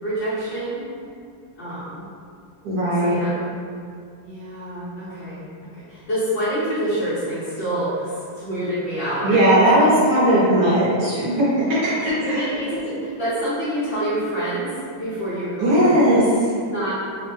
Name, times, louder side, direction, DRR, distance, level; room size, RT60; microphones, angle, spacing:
voice 1, 0.0-0.8 1.6-2.0 3.0-3.4 4.2-9.3 11.7-16.3 16.7-17.0, right 1 dB, 50° left, -14 dB, 0.7 m, -27 dB
voice 2, 2.6-3.2 9.2-12.4 15.6-16.2, right 1 dB, 65° right, -8 dB, 1.1 m, -18 dB
3.1 x 2.1 x 3.0 m, 2.3 s
omnidirectional pair, 2.1 m